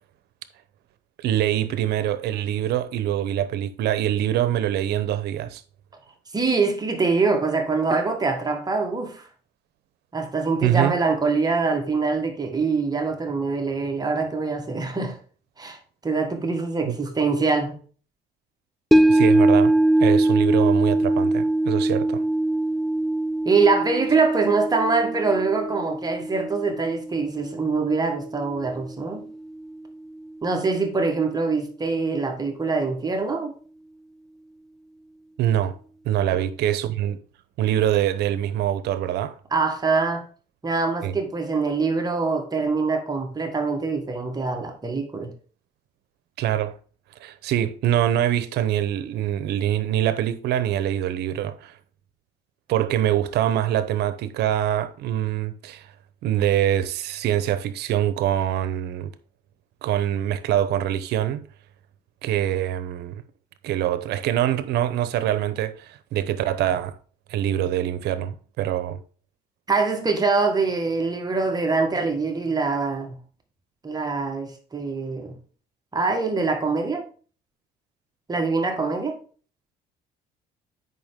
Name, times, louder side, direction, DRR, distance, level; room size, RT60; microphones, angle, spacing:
voice 1, 1.2-5.6 10.6-10.9 16.9-17.0 18.9-19.7 20.0-22.2 35.4-35.7 36.0-37.2 37.6-39.4 41.0-41.1 46.4-46.8 47.2-51.8 52.7-55.9 56.2-59.1 59.8-61.4 62.2-63.2 63.6-66.9 67.3-69.0, right 11 dB, 75° right, 0.9 m, -24 dB
voice 2, 6.3-9.3 10.1-15.2 15.6-17.8 23.4-29.3 30.4-33.5 36.3-36.4 39.5-40.3 40.6-45.3 69.7-73.2 73.8-75.4 75.9-77.1 78.3-79.2, right 4 dB, 25° right, 1.7 m, -24 dB
sound 1, 18.9-29.3 29.6-29.7, right 1 dB, ahead, 0.4 m, -22 dB
8.9 x 5.6 x 3.7 m
cardioid pair, 110°, 17 cm